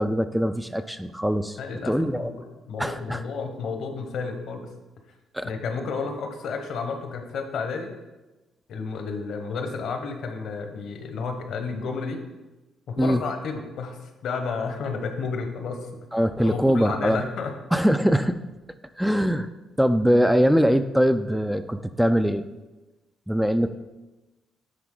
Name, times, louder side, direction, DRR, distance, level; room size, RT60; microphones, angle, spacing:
voice 1, 0.0-1.6 1.9-2.3 2.8-3.2 5.3-5.5 13.0-13.2 16.1-17.2 17.7-18.4 19.0-19.5 19.8-22.4 23.3-23.7, equal, 5° right, 9 dB, 0.3 m, -22 dB
voice 2, 1.6-4.7 5.4-7.9 8.7-12.2 12.9-15.9 16.4-17.5, left 4 dB, 70° left, 5 dB, 1.0 m, -31 dB
10.5 x 4.2 x 3.8 m, 1.1 s
cardioid pair, 90°, 0 cm